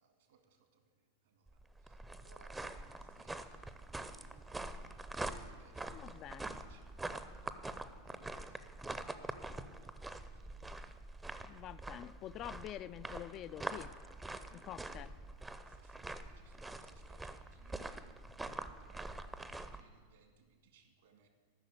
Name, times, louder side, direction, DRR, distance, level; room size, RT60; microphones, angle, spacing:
voice 1, 0.0-8.8 9.0-11.4 11.6-12.0 15.3-18.1 18.8-21.3, right 5 dB, 60° right, 5 dB, 1.9 m, -68 dB
sound 1, 1.5-19.8, right 2 dB, 10° right, 0.6 m, -45 dB
voice 2, 5.9-6.5 11.4-13.9 14.5-15.2, left 12 dB, 35° left, 13 dB, 0.3 m, -47 dB
13.5 x 6.4 x 8.1 m, 1.5 s
figure-of-eight pair, 90°, 0 cm